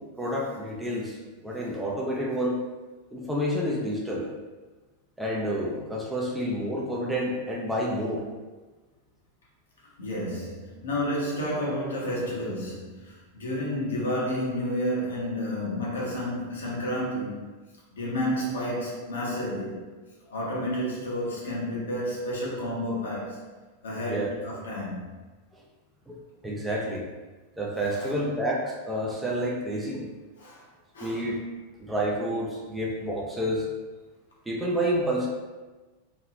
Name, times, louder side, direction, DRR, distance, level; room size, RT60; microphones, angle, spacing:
voice 1, 0.2-1.2 1.4-2.6 3.1-4.3 5.2-8.2 24.1-24.3 26.1-26.2 26.4-27.0 27.6-30.0 31.0-31.4 31.8-33.7 34.5-35.3, equal, 5° right, -4 dB, 0.5 m, -29 dB
voice 2, 10.0-17.5 18.0-19.9 20.3-23.4 23.8-25.0 27.8-28.4 30.4-30.6 30.9-31.3, equal, 65° left, -5 dB, 0.9 m, -31 dB
3.1 x 2.8 x 2.4 m, 1.2 s
figure-of-eight pair, 90°, 0 cm